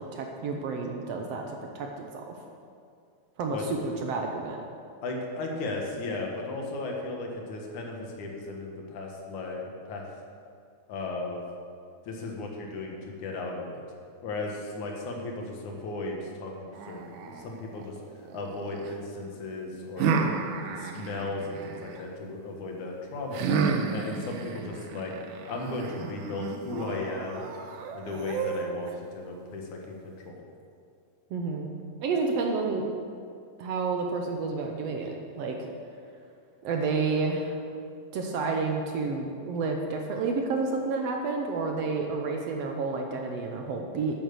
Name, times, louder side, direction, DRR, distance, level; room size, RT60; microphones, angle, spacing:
voice 1, 0.0-1.9 3.4-4.6 31.3-31.7 32.0-32.9 33.6-35.6 36.6-37.6 38.1-44.1, right 4 dB, 70° right, 2 dB, 1.7 m, -30 dB
voice 2, 3.5-3.9 5.0-10.0 10.9-11.4 12.0-13.8 14.2-18.0 18.3-20.3 20.7-23.5 23.9-25.1 25.5-27.5 27.9-30.4, left 2 dB, 80° left, 0 dB, 2.9 m, -35 dB
sound 1, 16.7-18.9 20.0-22.0 23.3-28.9, right 5 dB, 90° right, 2.3 m, -32 dB
9.0 x 8.9 x 6.7 m, 2.3 s
omnidirectional pair, 3.4 m